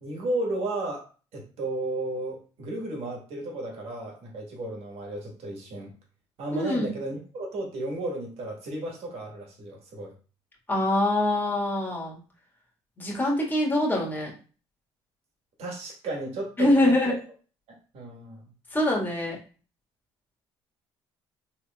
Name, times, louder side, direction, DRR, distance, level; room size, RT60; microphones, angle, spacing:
voice 1, 0.0-1.1 1.3-5.9 6.4-10.1 15.6-17.1 17.9-18.5, right 2 dB, 60° right, -1 dB, 1.5 m, -33 dB
voice 2, 6.5-6.9 10.7-12.2 13.0-14.3 16.6-17.1 18.7-19.4, left 1 dB, 15° left, -3 dB, 1.7 m, -24 dB
3.4 x 3.3 x 2.3 m, 0.37 s
supercardioid pair, 75°, 11 cm